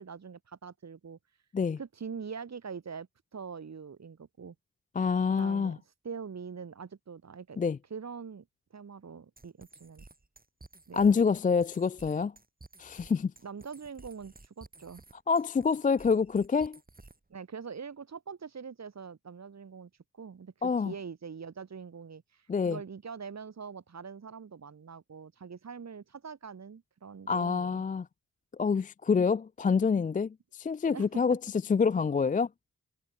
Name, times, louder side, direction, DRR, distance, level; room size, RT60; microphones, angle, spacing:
voice 1, 0.0-1.4 1.8-4.5 5.4-7.6 7.9-8.4 8.7-10.0 10.9-11.2 13.4-15.0 17.3-27.8 30.9-31.4, right 6 dB, 60° right, 2.1 m, -43 dB
voice 2, 5.0-5.8 7.6-7.8 10.9-12.3 12.8-13.3 15.3-16.8 20.6-20.9 22.5-22.8 27.3-28.1 28.6-31.4 31.7-32.5, left 5 dB, 25° left, 0.3 m, -27 dB
sound 1, 9.4-17.3, right 2 dB, 30° right, 7.3 m, -54 dB
wide cardioid pair, 85°, 31 cm